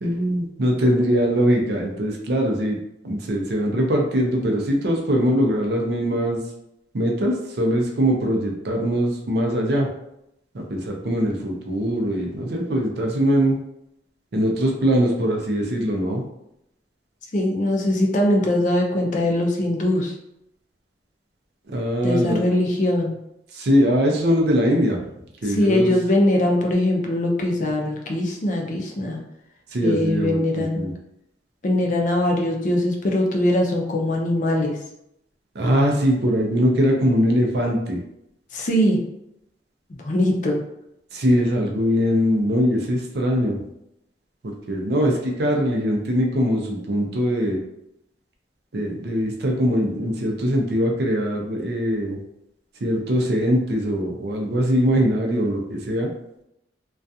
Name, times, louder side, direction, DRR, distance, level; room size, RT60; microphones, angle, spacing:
voice 1, 0.0-2.8 3.0-6.4 6.9-9.9 10.5-13.6 14.3-16.2 21.7-22.4 23.5-25.1 25.4-25.9 29.7-30.9 35.5-38.0 41.1-43.7 44.4-47.6 48.7-52.2 52.8-56.1, equal, 60° right, 1 dB, 0.5 m, -22 dB
voice 2, 17.3-20.1 22.0-23.2 25.5-29.2 29.8-30.8 31.6-34.8 38.5-39.0 40.0-40.6, left 1 dB, 45° left, 0 dB, 0.4 m, -21 dB
2.3 x 2.3 x 2.6 m, 0.81 s
head